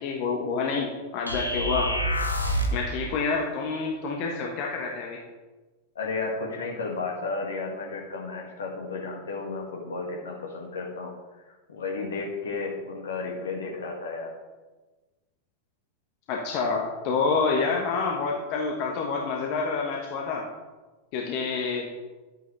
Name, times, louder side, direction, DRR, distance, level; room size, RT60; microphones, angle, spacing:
voice 1, 0.0-1.9 2.7-5.2 16.3-20.5 21.1-21.8, left 4 dB, 45° left, 0 dB, 1.3 m, -28 dB
sound 1, 1.3-2.9, equal, 90° left, 1.3 m, -27 dB
voice 2, 6.0-11.1 11.4-14.3, left 3 dB, 65° left, 0 dB, 2.1 m, -33 dB
11.0 x 9.0 x 3.4 m, 1.2 s
figure-of-eight pair, 90°, 0 cm